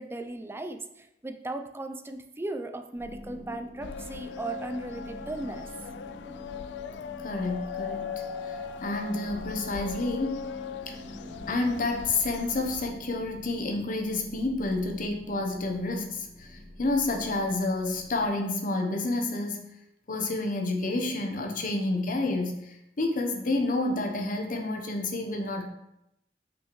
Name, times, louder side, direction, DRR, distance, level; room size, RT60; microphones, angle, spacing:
voice 1, 0.0-5.7, right 2 dB, 15° right, 7 dB, 0.4 m, -37 dB
sound 1, 2.9-18.3, left 1 dB, 30° right, 2.2 m, -45 dB
sound 2, 3.8-12.9, left 7 dB, 75° left, 0.3 m, -40 dB
voice 2, 7.2-8.2 8.5-10.4 10.9-11.0 11.5-19.7 20.1-25.7, left 2 dB, 50° left, 3 dB, 0.8 m, -29 dB
5.5 x 5.5 x 3.1 m, 0.86 s
head